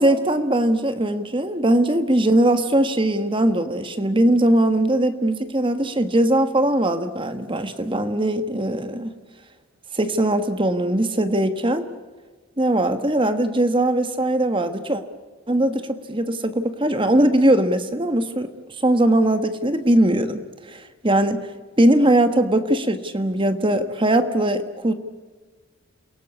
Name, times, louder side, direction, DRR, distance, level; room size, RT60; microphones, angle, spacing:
voice 1, 0.0-9.1 9.9-11.9 12.6-15.0 15.5-18.5 18.8-20.4 20.7-21.5 21.8-24.9, right 1 dB, 25° right, 9 dB, 1.3 m, -20 dB
28.5 x 18.0 x 8.4 m, 1.4 s
head